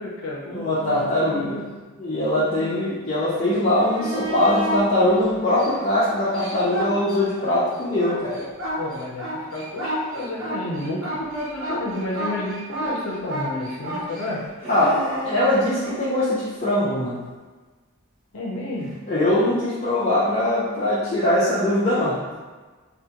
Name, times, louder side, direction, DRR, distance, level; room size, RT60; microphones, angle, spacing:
voice 1, 0.0-1.7 2.6-2.8 8.8-14.5 18.3-19.0, left 1 dB, 85° left, -4 dB, 0.5 m, -31 dB
voice 2, 0.5-1.6 2.0-8.4 14.7-17.3 19.1-22.2, left 1 dB, 35° left, -12 dB, 0.6 m, -22 dB
sound 1, 3.6-4.8 5.4-7.5 7.8-16.0 18.8-18.9, right 1 dB, 65° right, 0.9 m, -31 dB
3.5 x 2.2 x 2.8 m, 1.3 s
head